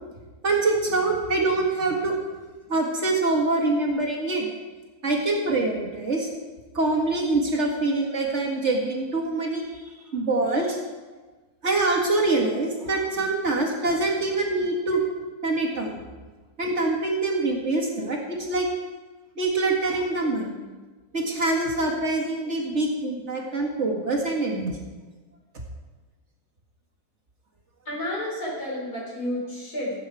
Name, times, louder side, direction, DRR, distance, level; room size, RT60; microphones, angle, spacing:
voice 1, 0.4-2.2 2.7-4.5 5.0-6.3 6.7-10.8 11.6-15.0 15.4-16.0 16.6-18.7 19.4-20.5 21.1-24.7, right 2 dB, 50° right, -1 dB, 2.1 m, -25 dB
voice 2, 27.8-29.9, left 1 dB, 80° left, -4 dB, 4.6 m, -31 dB
16.0 x 8.4 x 4.8 m, 1.3 s
omnidirectional pair, 1.6 m